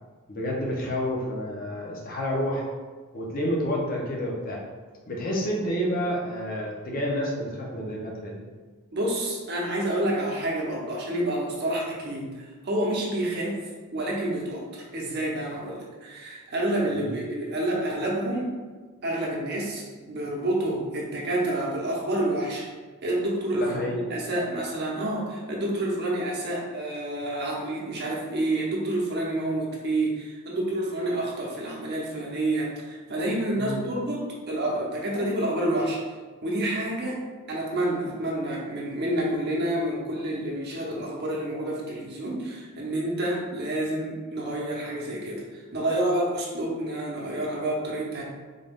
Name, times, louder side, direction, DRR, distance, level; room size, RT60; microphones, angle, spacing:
voice 1, 0.3-2.7 3.1-4.6 5.1-8.4 16.9-17.1 23.6-24.0 33.6-33.8, equal, 40° left, -2 dB, 0.7 m, -29 dB
voice 2, 8.9-13.6 13.9-18.5 19.0-22.7 23.0-36.0 36.4-37.2 37.5-48.2, right 1 dB, 50° right, -3 dB, 0.8 m, -28 dB
3.9 x 2.3 x 3.5 m, 1.4 s
head